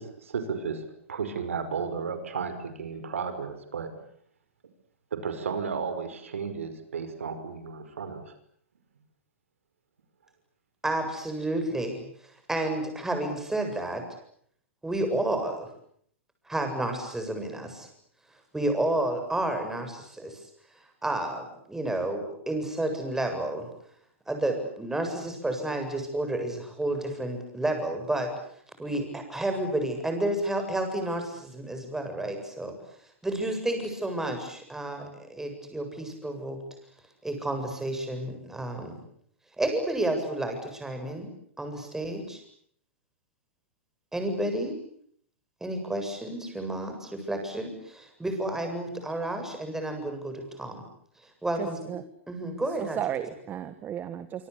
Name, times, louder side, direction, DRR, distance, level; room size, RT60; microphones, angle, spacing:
voice 1, 0.0-3.9 5.1-8.3, right 5 dB, 85° right, 10 dB, 5.4 m, -33 dB
voice 2, 10.8-12.0 12.5-14.0 14.8-15.7 16.5-17.9 18.5-20.4 21.0-23.7 24.3-28.3 28.8-32.7 33.2-36.6 37.2-39.0 39.6-41.3 41.6-42.4 44.1-44.8 45.6-50.8 51.4-52.0 52.3-53.0, right 1 dB, 5° right, 5 dB, 7.8 m, -31 dB
voice 3, 51.6-52.0 52.8-54.5, right 10 dB, 25° right, 12 dB, 1.7 m, -34 dB
26.0 x 25.5 x 8.5 m, 0.64 s
hypercardioid pair, 120°, 7 cm